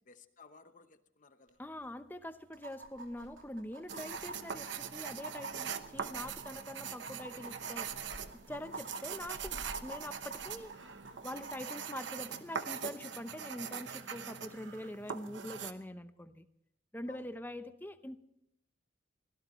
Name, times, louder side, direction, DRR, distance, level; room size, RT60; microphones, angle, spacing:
voice 1, 0.1-1.6 3.9-4.2 17.1-17.2, left 4 dB, 40° left, 9 dB, 0.9 m, -57 dB
sound 1, 1.5-1.6 1.8-1.9 2.5-12.8 14.5-14.6, right 3 dB, 80° right, 3.1 m, -49 dB
voice 2, 1.6-7.9 8.5-10.7 11.2-16.4 16.9-18.2, left 1 dB, 10° left, 10 dB, 0.8 m, -44 dB
Purr / Meow, 2.8-11.6, left 1 dB, 60° left, 1.3 m, -57 dB
sound 2, 3.9-15.7, right 7 dB, 65° right, 1.0 m, -42 dB
24.5 x 17.0 x 3.1 m, 0.77 s
head